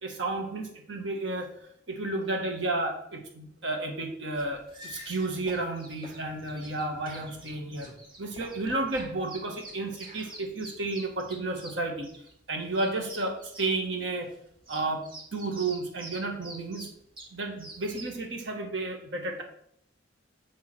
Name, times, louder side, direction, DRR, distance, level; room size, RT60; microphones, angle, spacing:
voice 1, 0.0-1.5 1.9-12.1 12.5-14.3 14.7-16.9 17.3-19.4, right 2 dB, 70° right, 3 dB, 1.9 m, -32 dB
sound 1, 4.3-18.2, right 1 dB, 25° right, 1.8 m, -48 dB
sound 2, 4.7-4.9 5.5-5.6 6.0-6.2 6.6-6.8 7.1-8.0 8.4-8.5 8.9-10.3, right 2 dB, 45° right, 1.8 m, -49 dB
7.2 x 4.8 x 6.2 m, 0.67 s
head